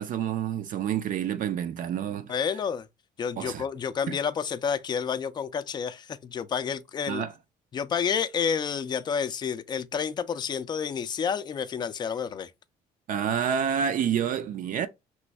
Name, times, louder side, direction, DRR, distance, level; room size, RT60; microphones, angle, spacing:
voice 1, 0.0-2.4 3.4-3.6 4.1-4.2 7.1-7.3 13.1-14.9, right 8 dB, 55° right, 0.4 m, -28 dB
voice 2, 2.3-2.9 3.2-7.2 7.7-12.5, left 7 dB, 25° left, 0.3 m, -29 dB
3.1 x 2.6 x 3.2 m
cardioid pair, 110°, 17 cm